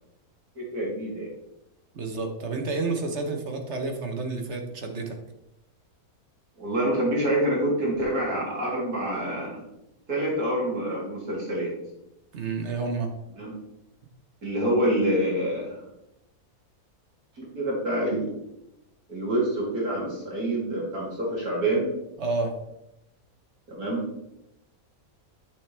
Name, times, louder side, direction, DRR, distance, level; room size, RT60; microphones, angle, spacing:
voice 1, 0.5-1.3 6.6-9.6 10.1-11.7 13.4-13.5 14.4-15.8 17.4-18.3 19.1-21.9 23.7-24.0, right 1 dB, 90° right, -5 dB, 3.5 m, -27 dB
voice 2, 1.9-5.2 12.3-13.1 22.2-22.5, right 3 dB, 50° right, 4 dB, 1.2 m, -30 dB
8.7 x 6.7 x 3.4 m, 0.88 s
omnidirectional pair, 1.6 m